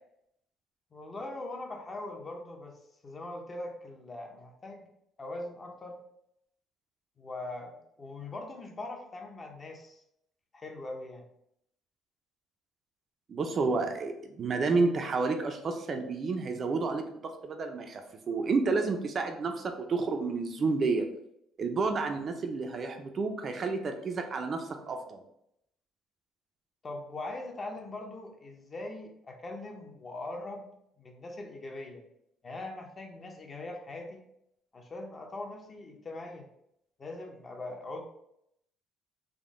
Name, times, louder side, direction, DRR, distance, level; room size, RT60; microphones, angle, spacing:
voice 1, 0.9-4.9 5.2-6.0 7.2-10.0 10.5-11.2 26.8-30.7 31.0-32.0 32.4-34.3 34.7-36.5 37.0-38.0, left 2 dB, 25° left, 2 dB, 0.6 m, -41 dB
voice 2, 13.3-21.1 21.6-25.2, right 4 dB, 35° right, 5 dB, 0.4 m, -30 dB
3.6 x 2.1 x 3.6 m, 0.76 s
cardioid pair, 130°, 0 cm